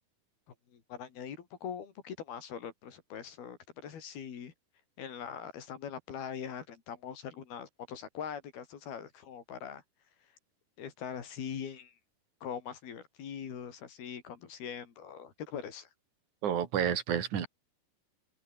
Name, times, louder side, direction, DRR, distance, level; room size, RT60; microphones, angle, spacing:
voice 1, 0.7-4.5 5.0-9.8 10.8-11.9 12.4-15.9, left 8 dB, 75° left, 5.0 m, -42 dB
voice 2, 16.4-17.5, right 9 dB, 55° right, 3.8 m, -30 dB
omnidirectional pair, 4.5 m